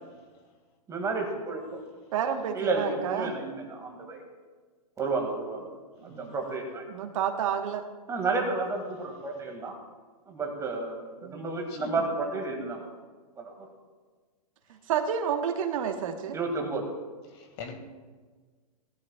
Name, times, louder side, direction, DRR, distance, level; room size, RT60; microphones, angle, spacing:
voice 1, 0.9-1.8 2.5-4.2 5.0-5.6 6.0-6.8 8.1-9.8 10.3-12.9 13.4-13.7 16.3-16.9, right 3 dB, 15° right, 2 dB, 2.0 m, -31 dB
voice 2, 2.1-3.3 6.0-6.3 6.9-7.8 11.2-11.4 14.9-16.4, right 8 dB, 55° right, 5 dB, 1.3 m, -30 dB
voice 3, 17.3-17.8, left 6 dB, 45° left, 5 dB, 1.9 m, -41 dB
17.5 x 11.5 x 2.3 m, 1.4 s
hypercardioid pair, 130°, 21 cm